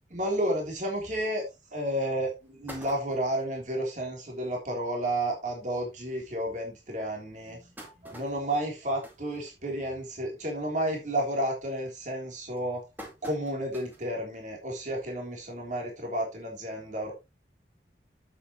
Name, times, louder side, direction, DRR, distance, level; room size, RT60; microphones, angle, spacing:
voice 1, 0.1-1.4 1.7-12.8 13.2-17.1, right 1 dB, 45° right, 0 dB, 3.4 m, -31 dB
sound 1, 1.5-1.6 2.1-2.2 2.4-3.5 4.1-4.2 4.4-4.5 4.9-5.0 5.7-5.8 6.4-6.5 7.2-10.0 10.4-10.7 11.1-11.5 12.1-14.1 14.6-14.7 15.8-15.9, equal, 10° right, 2.2 m, -48 dB
8.4 x 8.4 x 3.0 m, 0.24 s
head